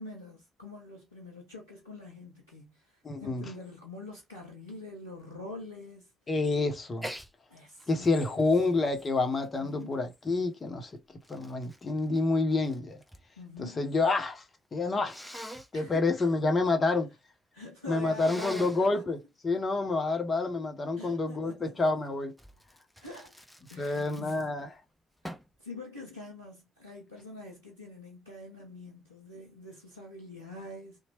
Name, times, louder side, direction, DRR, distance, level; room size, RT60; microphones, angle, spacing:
voice 1, 0.0-6.1 7.5-8.5 9.6-10.0 13.4-13.9 15.7-16.3 16.9-17.0 17.5-19.1 20.9-21.9 23.0-23.4 23.7-24.6 25.6-31.0, left 2 dB, 90° left, 0.5 m, -45 dB
voice 2, 3.0-3.5 6.3-7.1 7.9-10.9 11.3-13.0 13.6-14.4 14.7-15.2 15.7-17.1 17.9-19.2 19.4-22.3 23.8-24.7, left 3 dB, 35° left, 0.8 m, -28 dB
Sneeze, 7.0-7.3 7.8-10.1 10.8-13.3 13.6-14.2 15.1-15.7 18.1-18.9 22.4-24.7 25.2-25.6, equal, 5° left, 0.7 m, -44 dB
2.9 x 2.1 x 2.9 m
figure-of-eight pair, 45°, 0 cm